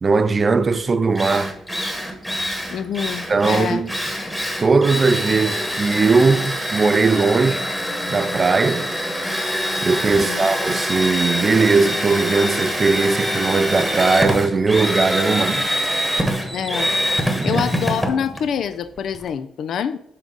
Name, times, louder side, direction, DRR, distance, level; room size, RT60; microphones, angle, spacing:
voice 1, 0.0-1.5 3.3-3.9 4.6-7.6 8.1-8.9 9.8-15.7 17.3-17.6, right 4 dB, 35° right, 0.4 m, -19 dB
Drill, 0.7-0.8 1.2-19.3, equal, ahead, 1.2 m, -25 dB
voice 2, 2.7-3.8 10.1-10.5 16.5-16.9 17.4-20.0, left 8 dB, 65° left, 0.4 m, -26 dB
6.1 x 3.6 x 5.2 m
cardioid pair, 90°, 0 cm